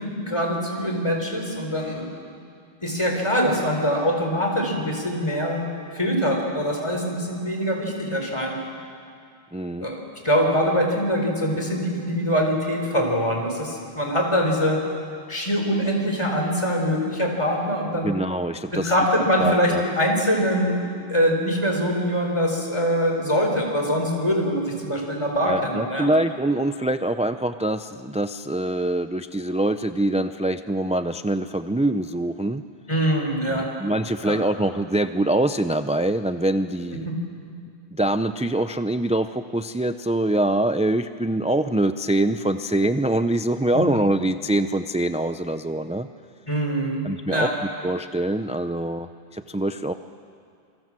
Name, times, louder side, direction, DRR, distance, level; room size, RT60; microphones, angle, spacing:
voice 1, 0.0-2.1 2.8-5.7 5.9-8.6 9.8-10.0 10.2-14.8 15.3-18.2 18.7-26.1 32.9-33.7 34.2-34.4 37.1-37.2 43.7-43.8 46.5-47.6, equal, 30° left, 1 dB, 4.3 m, -23 dB
voice 2, 9.5-9.9 18.0-19.8 25.5-32.6 33.5-37.1 37.9-46.1 47.0-47.5 47.8-49.9, right 1 dB, 10° right, 10 dB, 0.3 m, -24 dB
27.0 x 24.5 x 7.6 m, 2.3 s
omnidirectional pair, 1.1 m